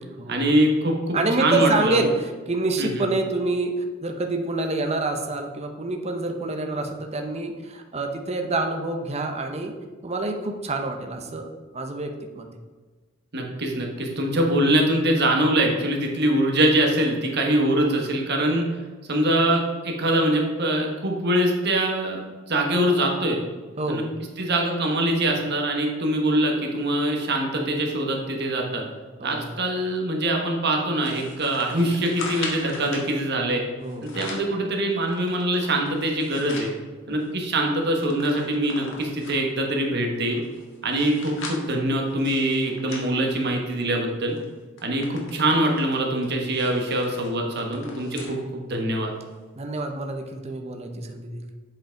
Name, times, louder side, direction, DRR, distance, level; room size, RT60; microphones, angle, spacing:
voice 1, 0.3-2.0 2.8-3.0 13.3-18.7 19.1-22.2 22.5-23.4 23.9-24.0 24.4-28.8 29.2-33.6 34.0-36.7 37.1-40.4 40.8-44.3 44.8-49.1, right 1 dB, 55° right, 1 dB, 1.4 m, -23 dB
voice 2, 1.1-9.7 10.0-11.5 11.7-12.5 23.8-24.1 29.2-29.4 33.8-34.2 37.1-37.2 49.6-51.5, right 2 dB, 30° right, 4 dB, 0.8 m, -27 dB
sound 1, 31.0-33.1 33.8-34.5 35.0-36.7 37.2-37.3 37.5-39.6 40.1-43.9 44.3-44.5 44.8-48.4 48.8-48.9 49.8-49.9, left 4 dB, 65° left, 1.5 m, -39 dB
7.6 x 5.1 x 4.5 m, 1.3 s
head